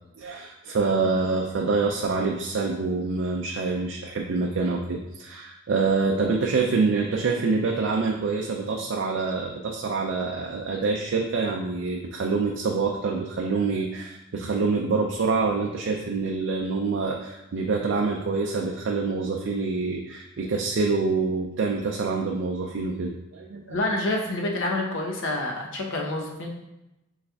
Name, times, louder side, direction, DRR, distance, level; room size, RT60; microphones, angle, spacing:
voice 1, 0.2-24.0, right 4 dB, 65° right, 0 dB, 0.4 m, -26 dB
voice 2, 23.7-26.5, left 2 dB, 70° left, 0 dB, 0.8 m, -27 dB
6.3 x 3.3 x 2.3 m, 0.93 s
head